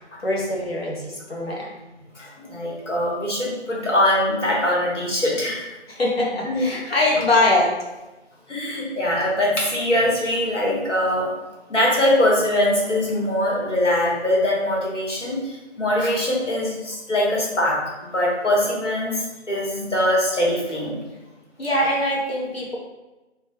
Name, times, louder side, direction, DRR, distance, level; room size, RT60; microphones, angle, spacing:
voice 1, 0.2-1.7 5.9-7.7 21.6-22.8, left 1 dB, 55° left, -4 dB, 0.7 m, -22 dB
voice 2, 2.2-5.7 6.4-6.6 8.5-11.3 11.7-17.8 18.0-21.0, left 1 dB, 80° left, -4 dB, 1.1 m, -22 dB
2.2 x 2.1 x 3.4 m, 1.1 s
figure-of-eight pair, 175°, 36 cm